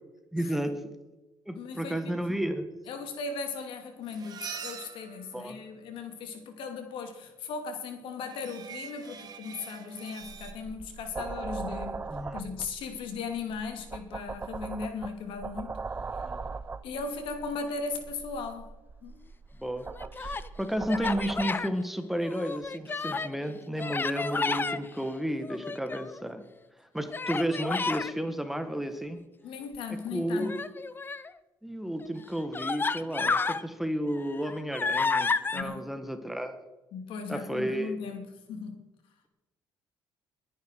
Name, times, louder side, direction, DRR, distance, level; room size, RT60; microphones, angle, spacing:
voice 1, 0.3-0.9 1.4-2.7 5.3-5.6 12.1-12.4 16.2-16.4 19.6-19.9 20.1-26.4 26.8-29.2 30.1-30.6 31.6-36.6 37.3-38.0, equal, 5° right, 8 dB, 1.5 m, -32 dB
voice 2, 1.5-2.1 2.9-12.0 12.3-15.8 16.1-16.2 16.8-18.7 19.0-19.2 29.4-30.5 35.5-35.9 36.9-38.8, left 4 dB, 75° left, 5 dB, 2.7 m, -37 dB
sound 1, 4.1-6.1 8.3-10.5, right 6 dB, 50° right, 2.0 m, -44 dB
sound 2, 10.2-21.5, right 4 dB, 20° right, 0.5 m, -40 dB
Human voice, 19.9-20.5 20.9-21.7 22.2-23.4 23.8-24.8 25.4-26.2 27.1-28.1 30.4-31.3 32.0-32.1 32.5-33.6 34.1-35.6, left 4 dB, 25° left, 0.7 m, -31 dB
21.5 x 10.0 x 4.6 m, 1.0 s
cardioid pair, 100°, 9 cm